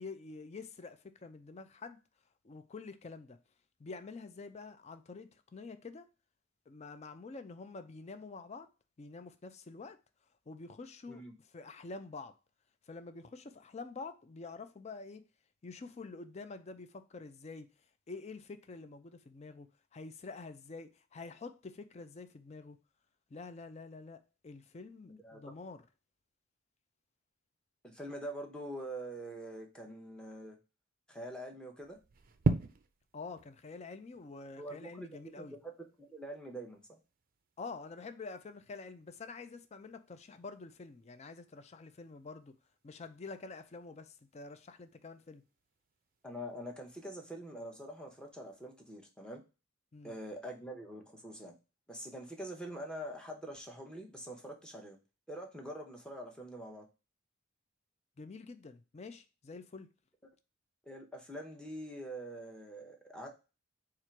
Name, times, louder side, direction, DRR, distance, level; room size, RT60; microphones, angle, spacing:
voice 1, 0.0-2.0 2.4-3.4 3.8-6.1 6.7-8.7 9.0-10.0 10.5-11.2 11.5-12.4 12.9-15.2 15.6-17.7 18.1-22.8 23.3-25.8 33.1-35.6 37.6-42.5 42.8-45.4 49.9-50.2 58.2-59.9, left 4 dB, 30° left, 0.4 m, -47 dB
voice 2, 25.1-25.4 27.8-30.6 31.1-32.0 34.6-35.1 35.4-35.7 36.0-37.0 46.2-49.4 50.0-51.5 51.9-55.0 55.3-56.8 60.9-63.3, right 1 dB, 5° left, 0.8 m, -44 dB
sound 1, 31.8-49.0, right 3 dB, 45° right, 0.4 m, -44 dB
4.4 x 2.5 x 4.5 m
head